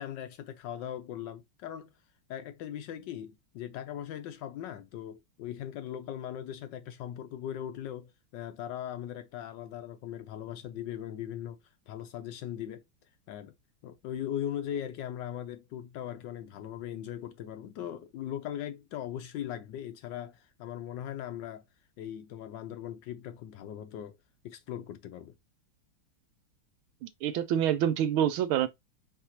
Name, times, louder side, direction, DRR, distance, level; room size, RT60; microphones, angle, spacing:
voice 1, 0.0-1.9 2.3-11.6 11.9-12.8 13.3-13.5 13.8-21.6 22.0-24.2 24.4-25.3, left 10 dB, 70° left, 1.1 m, -39 dB
voice 2, 27.0-28.7, right 10 dB, 80° right, 1.4 m, -27 dB
4.8 x 3.5 x 2.8 m
omnidirectional pair, 2.3 m